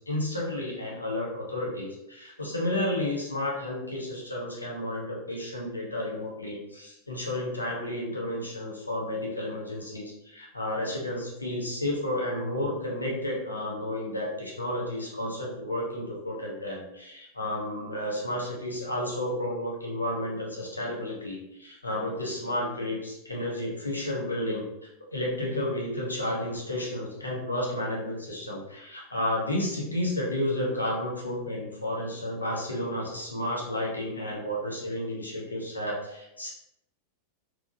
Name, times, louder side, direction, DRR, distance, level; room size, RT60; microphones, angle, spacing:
voice 1, 0.1-24.7 25.1-36.5, left 1 dB, 80° left, -3 dB, 0.8 m, -32 dB
3.5 x 2.8 x 2.5 m, 0.86 s
figure-of-eight pair, 90°, 0 cm